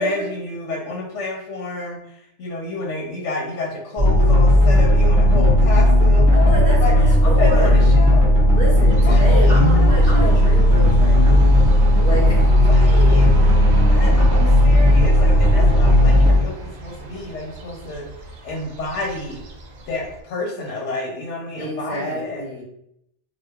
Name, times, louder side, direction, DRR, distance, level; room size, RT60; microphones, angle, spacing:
voice 1, 0.0-6.9 7.2-8.4 9.0-10.5 12.6-13.3 13.9-18.1 18.4-19.4 19.8-22.5, left 3 dB, 85° left, -1 dB, 1.1 m, -29 dB
sound 1, 4.0-16.4, equal, 5° left, 0.9 m, -14 dB
voice 2, 6.3-7.9 8.5-11.5 12.0-12.5 21.6-22.6, right 1 dB, 50° left, -6 dB, 1.6 m, -28 dB
sound 2, 8.9-20.2, right 2 dB, 70° right, 0.8 m, -34 dB
5.0 x 2.0 x 2.3 m, 0.75 s
omnidirectional pair, 1.2 m